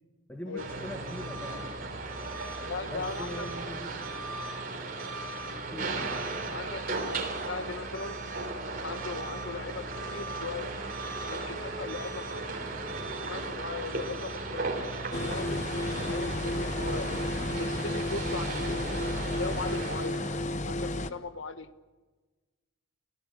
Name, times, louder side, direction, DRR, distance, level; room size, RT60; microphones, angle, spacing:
voice 1, 0.3-1.7 2.9-3.9 5.7-6.2, equal, 10° left, 3 dB, 1.8 m, -41 dB
sound 1, 0.6-20.4, right 2 dB, 45° right, 3.6 m, -36 dB
voice 2, 2.7-3.5 6.5-8.2 8.8-10.7 11.3-12.5 13.2-15.7 16.1-17.1 17.6-18.9 19.4-20.2 20.7-21.7, left 4 dB, 75° left, 12 dB, 1.2 m, -39 dB
sound 2, 15.1-21.1, left 1 dB, 35° left, 0.9 m, -32 dB
28.5 x 15.0 x 8.4 m, 1.3 s
head